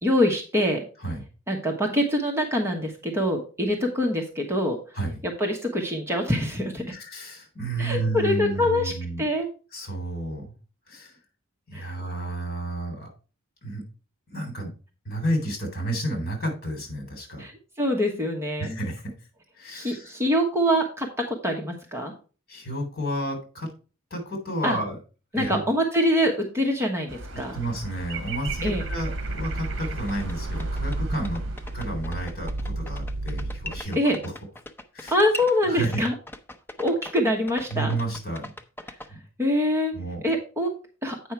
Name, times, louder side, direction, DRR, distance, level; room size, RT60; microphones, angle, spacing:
voice 1, 0.0-0.8 1.5-4.8 5.2-6.8 7.8-8.9 9.2-9.5 11.7-11.9 17.4-17.5 17.8-18.8 19.7-22.1 24.6-24.8 25.3-27.6 28.6-28.8 34.0-34.2 35.1-36.1 36.8-38.0 39.4-39.9 40.2-40.7 41.0-41.2, equal, 15° right, 2 dB, 1.1 m, -24 dB
voice 2, 6.9-9.2 9.7-10.5 10.9-11.2 11.7-13.1 13.6-13.8 14.3-14.7 15.0-17.4 18.6-19.1 19.5-20.2 22.5-23.7 24.1-25.0 25.3-25.6 27.5-34.3 34.9-35.1 35.7-36.0 37.7-38.5 39.1-39.2 39.9-40.2, right 1 dB, 50° left, 4 dB, 3.3 m, -31 dB
sound 1, 27.1-32.1, right 3 dB, 60° right, 1.2 m, -38 dB
sound 2, 28.5-33.8, right 2 dB, 45° right, 0.4 m, -32 dB
sound 3, 30.1-39.1, left 1 dB, 10° left, 0.6 m, -40 dB
8.5 x 5.5 x 4.5 m, 0.35 s
head